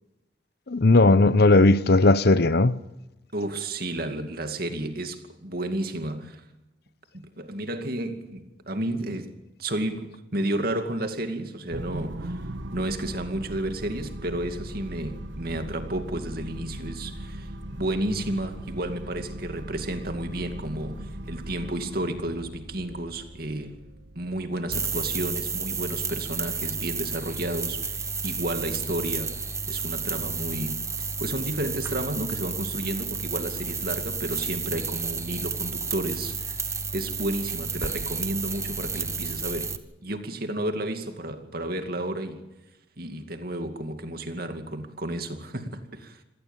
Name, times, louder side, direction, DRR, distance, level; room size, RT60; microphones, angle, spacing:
voice 1, 0.7-2.7, left 2 dB, 55° left, 0.8 m, -17 dB
voice 2, 3.3-6.4 7.1-23.7 24.2-29.4 29.7-36.7 36.9-39.8 40.0-42.4 43.0-46.2, right 1 dB, 50° right, 2.5 m, -32 dB
sound 1, 11.7-26.2, right 1 dB, 75° right, 1.3 m, -39 dB
sound 2, 24.7-39.8, right 5 dB, 15° right, 1.2 m, -31 dB
26.5 x 18.0 x 7.3 m
head